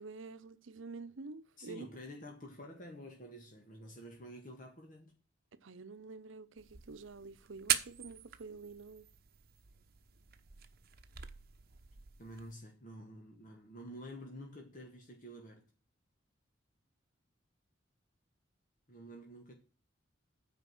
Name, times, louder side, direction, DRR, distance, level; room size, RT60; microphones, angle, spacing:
voice 1, 0.0-1.9 5.5-9.0, right 3 dB, 80° right, 0.8 m, -48 dB
voice 2, 1.6-5.1 12.2-15.6 18.9-19.5, equal, 45° left, 1.9 m, -49 dB
sound 1, 6.6-12.6, right 11 dB, 55° right, 1.0 m, -41 dB
9.1 x 5.2 x 7.6 m
head